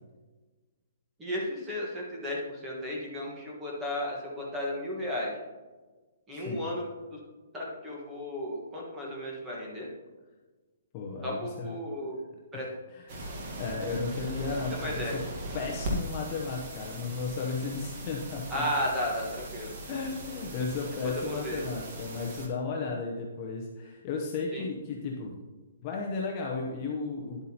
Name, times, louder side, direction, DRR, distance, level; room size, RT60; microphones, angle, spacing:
voice 1, 1.2-5.3 6.3-6.8 7.1-7.2 7.5-9.9 11.2-12.2 12.5-12.7 14.7-15.2 18.5-19.7 21.0-21.7 24.5-24.6, left 1 dB, 10° right, -3 dB, 1.4 m, -34 dB
voice 2, 6.3-6.6 10.9-11.7 12.5-12.6 12.9-15.2 15.5-18.7 19.9-25.4 25.8-27.4, left 4 dB, 20° left, -1 dB, 0.7 m, -34 dB
sound 1, 13.1-22.5, right 1 dB, 30° right, 1.4 m, -39 dB
10.0 x 8.2 x 2.9 m, 1.3 s
hypercardioid pair, 175°, 0 cm